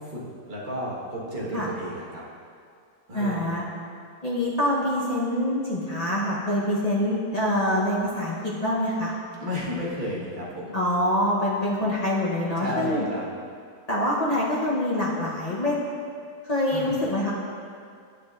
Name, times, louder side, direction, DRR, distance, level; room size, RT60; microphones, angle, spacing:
voice 1, 0.0-2.2 3.1-3.5 9.4-10.7 12.6-13.3 16.7-17.0, equal, 30° right, -6 dB, 1.2 m, -32 dB
voice 2, 3.1-3.6 4.2-9.1 10.7-13.1 13.9-15.8 16.4-17.3, left 1 dB, 45° left, -6 dB, 0.5 m, -25 dB
9.6 x 6.6 x 2.4 m, 2.2 s
omnidirectional pair, 1.8 m